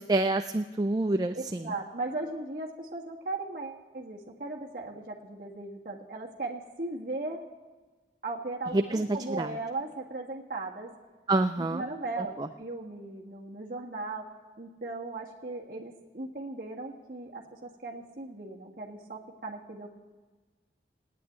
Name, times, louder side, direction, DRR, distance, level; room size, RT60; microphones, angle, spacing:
voice 1, 0.0-1.6 8.7-9.5 11.3-11.8, right 2 dB, 20° right, 8 dB, 0.4 m, -27 dB
voice 2, 1.3-7.4 8.2-10.9 11.6-14.3 14.6-19.9, right 2 dB, 50° right, -2 dB, 1.6 m, -37 dB
17.0 x 9.4 x 9.1 m, 1.3 s
head